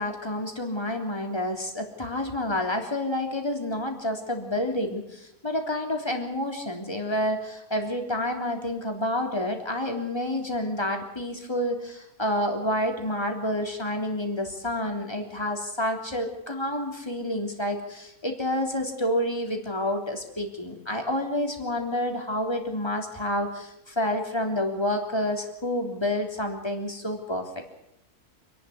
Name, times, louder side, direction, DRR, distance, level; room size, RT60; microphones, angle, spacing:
voice 1, 0.0-27.6, left 1 dB, 15° left, 3 dB, 3.5 m, -29 dB
27.5 x 12.0 x 9.5 m, 0.83 s
omnidirectional pair, 1.6 m